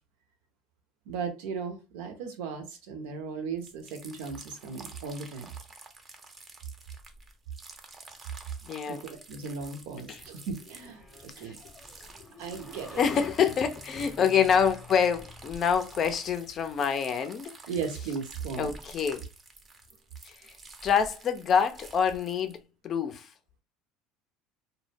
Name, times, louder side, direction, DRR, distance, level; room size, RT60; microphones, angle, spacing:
voice 1, 1.1-5.5 8.9-11.0 11.4-11.6 12.4-13.0 17.7-18.8, right 5 dB, 70° right, 0.7 m, -36 dB
sound 1, 3.6-22.6, right 3 dB, 30° right, 0.6 m, -50 dB
voice 2, 8.6-9.0 10.1-10.2 11.4-11.5 13.0-17.5 18.6-19.2 20.3-20.5 20.8-22.6 22.8-23.3, left 7 dB, 45° left, 0.5 m, -26 dB
sound 2, 9.6-17.0, left 2 dB, 10° left, 0.8 m, -49 dB
2.2 x 2.0 x 3.2 m
hypercardioid pair, 75°, 0 cm